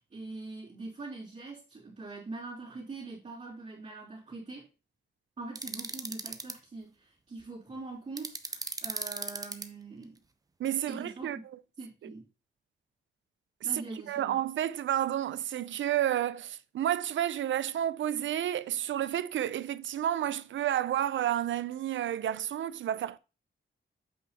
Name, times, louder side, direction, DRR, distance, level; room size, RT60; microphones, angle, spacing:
voice 1, 0.0-4.7 5.4-10.2 10.9-11.4 11.8-12.3 13.6-14.4, right 3 dB, 35° right, 3.4 m, -43 dB
sound 1, 5.6-6.5 8.2-9.7, right 3 dB, 20° right, 0.7 m, -36 dB
voice 2, 10.6-11.4 14.1-23.2, right 11 dB, 75° right, 0.6 m, -30 dB
8.0 x 5.6 x 4.2 m
wide cardioid pair, 155°, 20 cm